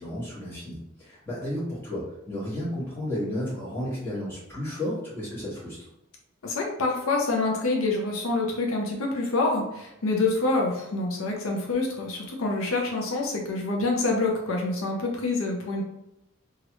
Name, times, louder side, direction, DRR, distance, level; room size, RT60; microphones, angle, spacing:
voice 1, 0.0-5.8, left 1 dB, 10° left, -9 dB, 1.4 m, -33 dB
voice 2, 6.4-15.8, left 3 dB, 75° left, 0 dB, 0.6 m, -26 dB
3.0 x 2.4 x 3.0 m, 0.87 s
head